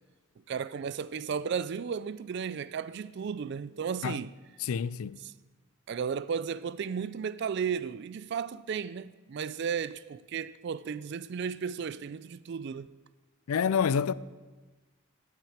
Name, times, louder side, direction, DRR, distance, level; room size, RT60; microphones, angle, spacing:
voice 1, 0.5-4.3 5.2-5.3 5.9-12.9, right 6 dB, 50° right, 0.3 m, -34 dB
voice 2, 4.6-5.2 13.5-14.1, left 7 dB, 80° left, 0.4 m, -28 dB
11.5 x 6.0 x 8.7 m
head